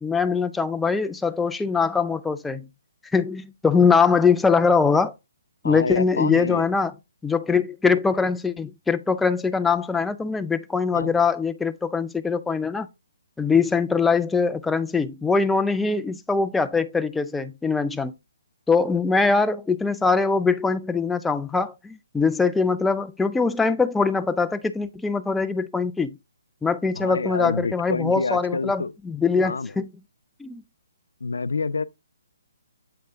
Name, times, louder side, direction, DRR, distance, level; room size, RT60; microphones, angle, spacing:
voice 1, 0.0-2.7 3.1-5.1 5.6-6.9 7.2-12.9 13.4-18.1 18.7-26.2 26.6-29.9 30.4-30.6, left 5 dB, 5° left, 0.3 m, -22 dB
voice 2, 5.6-6.7 10.9-11.1 26.9-28.9 29.4-29.7 31.2-31.8, left 4 dB, 80° left, 0.4 m, -27 dB
7.8 x 3.5 x 3.4 m
hypercardioid pair, 150°, 0 cm